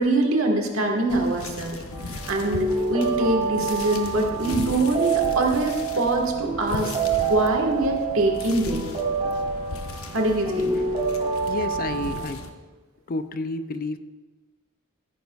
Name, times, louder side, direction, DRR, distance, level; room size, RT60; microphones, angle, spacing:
voice 1, 0.0-1.8 2.1-7.0 7.3-8.9 10.1-10.8, right 2 dB, 70° right, 2 dB, 1.5 m, -24 dB
sound 1, 1.1-12.5, left 2 dB, 70° left, 0.8 m, -37 dB
sound 2, 1.9-12.2, right 5 dB, 30° right, 1.6 m, -27 dB
voice 2, 11.4-12.4 13.1-14.0, left 3 dB, 45° left, 10 dB, 0.4 m, -30 dB
15.0 x 9.3 x 2.3 m, 1.3 s
head